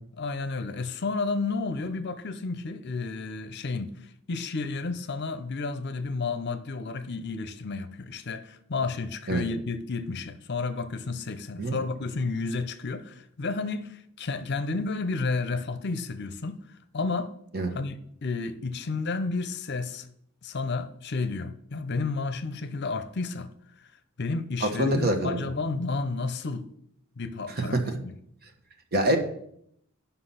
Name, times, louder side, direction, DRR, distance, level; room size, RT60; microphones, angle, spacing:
voice 1, 0.2-4.0 4.3-17.4 17.7-20.1 20.4-23.5 23.8-23.9 24.2-26.7 27.2-28.1, left 3 dB, 50° left, 0.7 m, -31 dB
voice 2, 24.6-25.5 27.7-27.9 28.9-29.2, right 1 dB, 45° right, 1.4 m, -25 dB
9.9 x 5.7 x 5.7 m
head